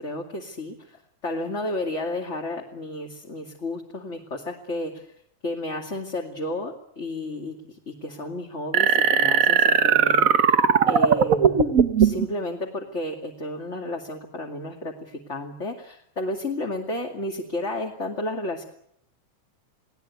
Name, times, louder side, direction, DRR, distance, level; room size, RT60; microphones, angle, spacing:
voice 1, 0.0-5.1 5.4-11.7 12.0-18.6, left 1 dB, 25° left, 1 dB, 2.3 m, -32 dB
sound 1, 8.7-12.3, right 6 dB, 50° right, 1.0 m, -19 dB
30.0 x 19.0 x 9.5 m, 0.74 s
omnidirectional pair, 3.4 m